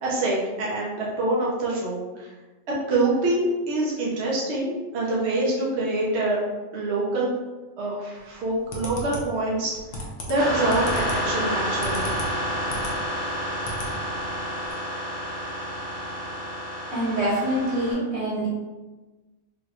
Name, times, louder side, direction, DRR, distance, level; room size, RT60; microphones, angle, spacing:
voice 1, 0.0-2.3 2.7-6.4 6.7-7.3 7.8-9.7 10.3-12.3, right 2 dB, 60° right, -4 dB, 0.9 m, -25 dB
sound 1, 8.3-13.0 13.3-13.9 14.3-14.4 14.6-14.7, left 1 dB, 65° left, 1.0 m, -35 dB
sound 2, 10.4-17.9, equal, 15° right, 0.5 m, -29 dB
voice 2, 16.9-18.5, right 1 dB, 80° right, -8 dB, 1.8 m, -25 dB
3.3 x 3.0 x 2.4 m, 1.2 s
omnidirectional pair, 1.4 m